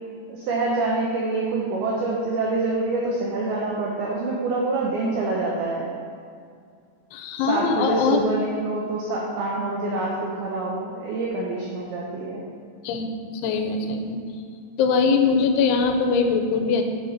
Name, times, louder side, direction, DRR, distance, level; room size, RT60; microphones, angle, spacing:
voice 1, 0.3-5.9 7.4-12.4, right 3 dB, 85° right, -3 dB, 2.2 m, -26 dB
voice 2, 7.1-8.3 12.8-13.1 13.4-14.2 14.8-16.9, left 5 dB, 85° left, 4 dB, 3.0 m, -22 dB
7.1 x 4.0 x 5.0 m, 2.2 s
omnidirectional pair, 5.3 m